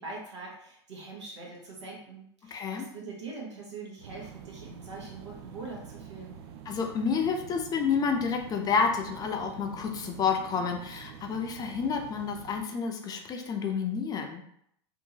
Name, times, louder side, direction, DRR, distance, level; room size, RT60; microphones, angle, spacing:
voice 1, 0.0-6.4, right 3 dB, 90° right, -3 dB, 1.1 m, -43 dB
voice 2, 2.5-2.9 6.7-14.4, left 6 dB, 25° left, 3 dB, 0.5 m, -29 dB
sound 1, 4.0-12.6, right 7 dB, 65° right, 0.4 m, -47 dB
2.8 x 2.5 x 2.7 m, 0.69 s
hypercardioid pair, 110°, 15 cm